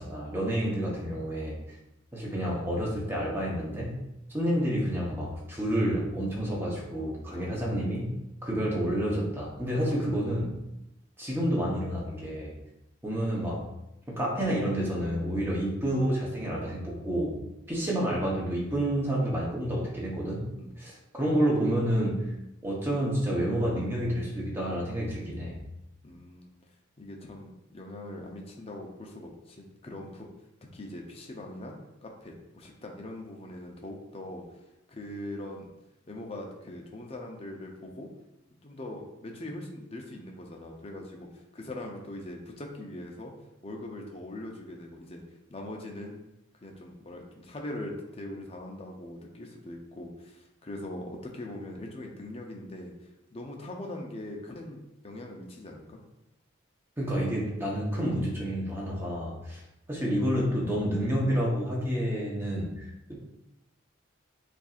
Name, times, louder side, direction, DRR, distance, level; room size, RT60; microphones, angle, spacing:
voice 1, 0.0-1.6 2.1-4.0 4.3-8.2 8.4-10.5 11.2-12.6 13.0-13.6 14.1-17.4 17.7-20.5 20.8-22.3 22.6-25.5 57.0-59.6 59.9-62.8 63.1-63.2, equal, 10° right, -4 dB, 0.8 m, -29 dB
voice 2, 9.7-10.0 20.6-20.7 26.0-26.6 27.0-30.3 30.7-31.7 32.0-34.4 34.9-35.7 36.1-38.1 38.6-43.3 43.6-45.2 45.5-46.2 46.6-52.9 53.3-54.8 55.0-56.0, left 1 dB, 30° left, 1 dB, 0.6 m, -41 dB
7.0 x 2.6 x 2.4 m, 0.90 s
head